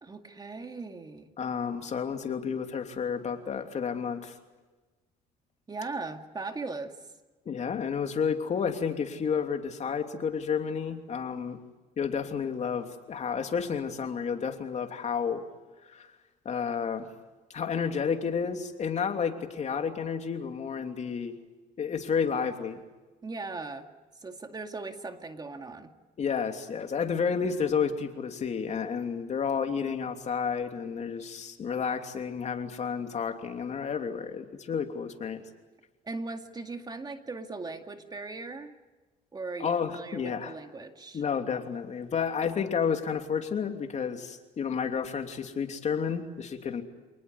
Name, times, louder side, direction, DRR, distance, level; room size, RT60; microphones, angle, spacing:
voice 1, 0.0-1.3 5.7-7.0 23.2-23.9 24.2-25.9 36.0-38.7 39.3-41.2, right 3 dB, 25° right, 6 dB, 2.2 m, -38 dB
voice 2, 1.4-4.4 7.4-11.6 12.0-15.4 15.9-16.1 16.4-17.1 17.5-21.3 21.8-22.8 26.2-35.4 39.6-40.5 41.1-46.8, left 6 dB, 40° left, 5 dB, 3.0 m, -31 dB
27.5 x 19.5 x 9.8 m, 1.2 s
cardioid pair, 110°, 17 cm